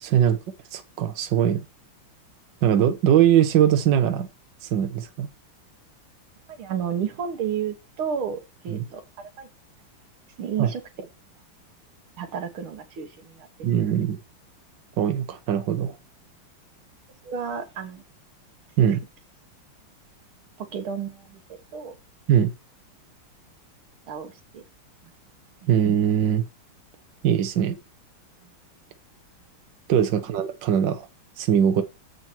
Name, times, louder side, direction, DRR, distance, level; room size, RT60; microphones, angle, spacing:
voice 1, 0.0-0.4 0.7-1.6 2.6-4.3 4.7-5.3 8.7-8.8 10.6-10.7 13.6-14.2 15.0-16.0 18.8-19.0 22.3-22.5 25.7-26.4 27.2-27.8 29.9-31.0 31.4-31.8, right 9 dB, 65° right, 1.6 m, -21 dB
voice 2, 6.5-9.5 10.4-11.1 12.2-13.5 17.2-18.0 18.8-18.9 20.6-21.4 21.7-22.0 24.1-24.6 25.0-25.1 25.6-25.7 28.4-28.5, right 7 dB, 80° right, 2.1 m, -32 dB
7.4 x 5.8 x 4.5 m
omnidirectional pair, 2.3 m